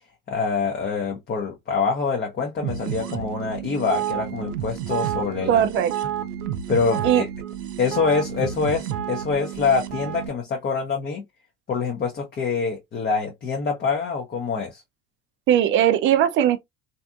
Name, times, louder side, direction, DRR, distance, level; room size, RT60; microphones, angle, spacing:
voice 1, 0.3-5.7 6.7-7.3 7.8-11.2 11.7-14.8, left 5 dB, 20° left, 0.7 m, -25 dB
sound 1, 2.6-10.3, right 10 dB, 80° right, 0.6 m, -30 dB
voice 2, 5.5-5.9 7.0-7.2 15.5-16.6, right 10 dB, 30° right, 0.4 m, -19 dB
3.3 x 2.7 x 2.3 m
hypercardioid pair, 75°, 46 cm